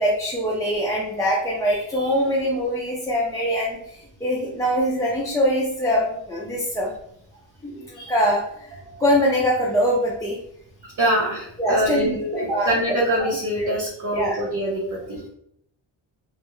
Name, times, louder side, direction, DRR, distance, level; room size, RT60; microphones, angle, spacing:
voice 1, 0.0-6.9 7.6-8.7 9.0-10.4 11.6-12.7 13.6-13.7 14.1-14.4, equal, 10° left, -5 dB, 0.3 m, -23 dB
voice 2, 8.7-9.0 10.8-15.2, equal, 40° right, -4 dB, 0.6 m, -25 dB
2.2 x 2.0 x 2.9 m, 0.71 s
wide cardioid pair, 100°, 49 cm